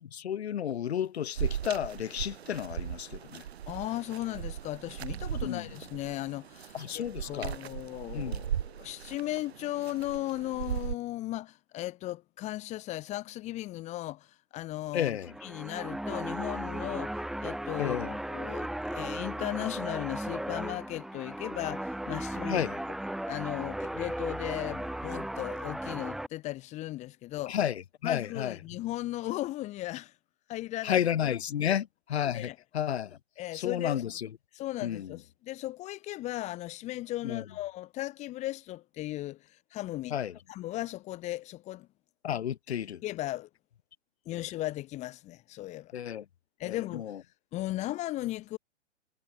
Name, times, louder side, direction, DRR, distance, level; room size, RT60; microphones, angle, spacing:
voice 1, 0.0-3.4 5.4-5.7 6.7-7.6 8.1-8.4 14.9-15.3 17.8-18.2 22.5-22.8 27.5-28.6 30.8-33.2 33.5-34.3 34.8-35.2 37.2-37.4 40.1-40.4 42.2-43.0 44.3-44.4 45.9-46.2 46.7-47.2, left 9 dB, 60° left, 1.4 m, -32 dB
sound 1, 1.4-10.9, right 9 dB, 55° right, 5.1 m, -38 dB
voice 2, 3.7-22.6 23.3-27.6 28.0-30.1 30.5-31.0 31.6-31.8 32.3-32.6 33.4-34.0 34.5-40.2 40.5-41.9 42.7-42.8 43.0-43.5 44.3-45.9 46.6-47.1 47.5-48.6, left 16 dB, 20° left, 1.2 m, -37 dB
sound 2, 15.2-26.3, right 1 dB, ahead, 0.8 m, -36 dB
figure-of-eight pair, 125°, 37 cm